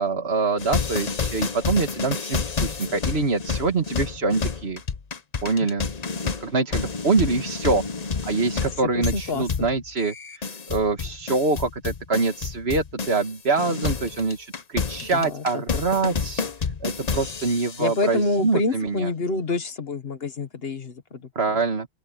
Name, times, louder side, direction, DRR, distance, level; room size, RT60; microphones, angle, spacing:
voice 1, 0.0-4.8 5.4-5.9 6.2-7.8 8.2-16.5 16.8-19.1 21.4-21.9, right 3 dB, 75° right, 2.1 m, -25 dB
sound 1, 0.6-13.3 13.6-18.0, left 5 dB, 40° left, 1.0 m, -29 dB
voice 2, 8.9-9.7 15.1-15.6 17.8-21.6, left 2 dB, 70° left, 1.6 m, -27 dB
open air
omnidirectional pair, 1.1 m